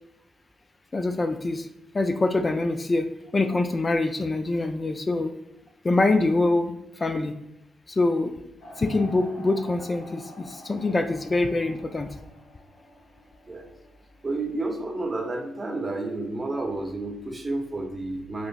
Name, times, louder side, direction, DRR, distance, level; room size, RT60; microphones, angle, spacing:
voice 1, 0.9-1.7 1.9-3.1 3.3-5.3 5.8-7.4 7.9-8.3 8.8-12.1, left 2 dB, 35° left, 7 dB, 0.3 m, -24 dB
sound 1, 8.6-14.6, equal, 75° left, 0.8 m, -47 dB
voice 2, 14.2-18.5, right 2 dB, 30° right, 3 dB, 0.7 m, -31 dB
4.9 x 2.1 x 2.3 m, 0.88 s
hypercardioid pair, 40°, 0 cm